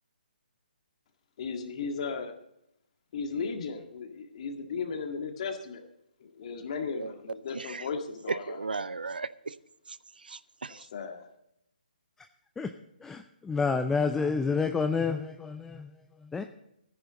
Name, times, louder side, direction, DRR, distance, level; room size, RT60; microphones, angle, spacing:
voice 1, 1.4-2.3 3.1-5.9 6.2-8.8 10.7-11.3, left 5 dB, 40° left, 5 dB, 1.8 m, -36 dB
voice 2, 7.5-7.9 8.3-9.5 9.9-10.9, right 4 dB, 70° right, 16 dB, 0.6 m, -36 dB
voice 3, 13.0-16.4, left 4 dB, 5° left, 7 dB, 0.4 m, -29 dB
14.0 x 10.5 x 4.0 m, 0.78 s
figure-of-eight pair, 135°, 5 cm